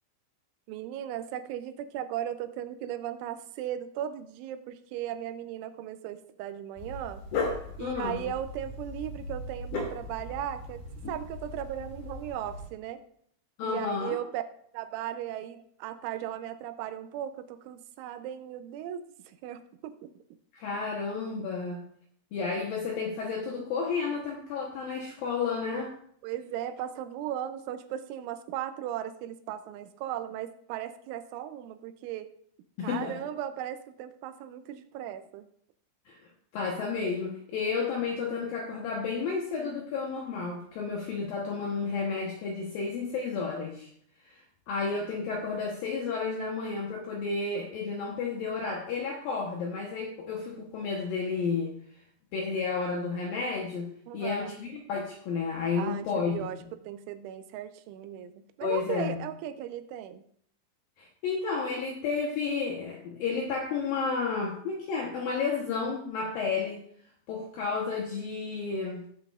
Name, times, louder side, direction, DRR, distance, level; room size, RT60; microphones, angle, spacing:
voice 1, 0.7-7.2 7.8-13.0 13.6-14.4 14.7-20.1 26.2-32.3 32.8-35.5 54.1-54.5 55.8-56.6 56.8-60.2, right 11 dB, 85° right, 10 dB, 3.0 m, -37 dB
Dog, 6.8-12.7, left 2 dB, 50° left, 2.9 m, -37 dB
voice 2, 7.8-8.2 13.6-14.2 20.5-21.8 22.3-25.9 32.8-33.2 36.1-36.2 36.5-43.9 44.3-51.7 52.3-56.4 58.6-59.2 61.0-66.8 67.3-69.0, left 5 dB, 75° left, 0 dB, 2.1 m, -32 dB
18.0 x 7.9 x 2.4 m, 0.64 s
omnidirectional pair, 5.5 m